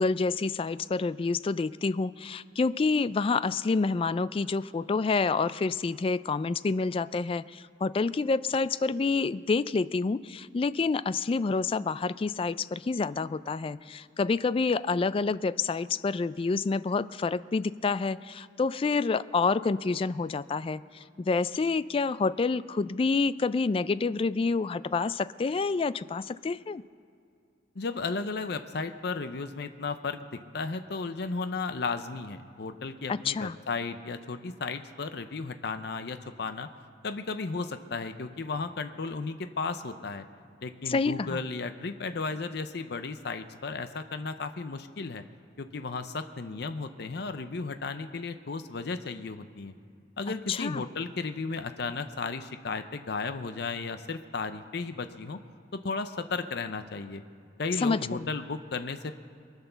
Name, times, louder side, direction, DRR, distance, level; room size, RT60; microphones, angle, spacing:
voice 1, 0.0-26.8 33.1-33.6 40.9-41.4 50.5-50.8 57.8-58.3, left 4 dB, 30° left, 16 dB, 0.3 m, -28 dB
voice 2, 27.8-36.7 37.0-40.2 40.6-45.2 45.6-49.7 50.2-55.4 55.7-57.2 57.6-59.1, left 4 dB, 65° left, 9 dB, 0.6 m, -34 dB
23.0 x 8.3 x 6.8 m, 2.4 s
head